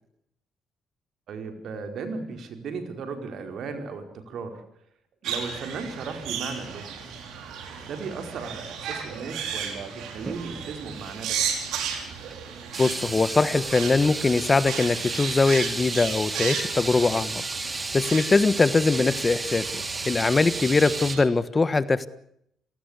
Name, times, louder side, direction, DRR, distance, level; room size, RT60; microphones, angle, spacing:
voice 1, 1.3-4.6 5.2-7.0 7.7-11.5, right 4 dB, 70° right, 6 dB, 4.8 m, -36 dB
sound 1, 5.2-21.2, right 7 dB, 85° right, 5.4 m, -35 dB
sound 2, 10.2-10.4 11.0-11.2 12.3-12.4 12.7-21.2, right 3 dB, 25° right, 1.7 m, -33 dB
voice 2, 12.8-17.4 17.9-22.1, left 3 dB, 25° left, 15 dB, 1.3 m, -22 dB
28.5 x 18.5 x 8.3 m, 0.74 s
cardioid pair, 90°, 0 cm